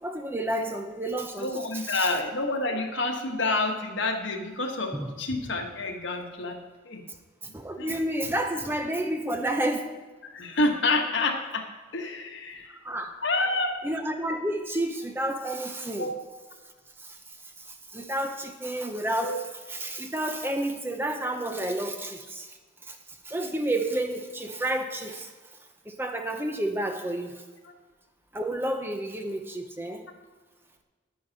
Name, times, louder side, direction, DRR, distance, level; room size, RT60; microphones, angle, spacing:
voice 1, 0.0-2.1 4.9-5.1 7.4-9.9 12.8-13.2 13.8-16.1 17.0-22.6 22.8-25.3 25.9-27.4 28.3-30.1, right 1 dB, 10° right, 5 dB, 0.6 m, -31 dB
voice 2, 1.4-6.6 6.9-7.0 7.8-7.9 10.2-12.7 13.2-13.8 16.0-16.2 19.2-19.4, left 2 dB, 65° left, 3 dB, 1.4 m, -28 dB
10.5 x 10.0 x 4.0 m, 1.3 s
head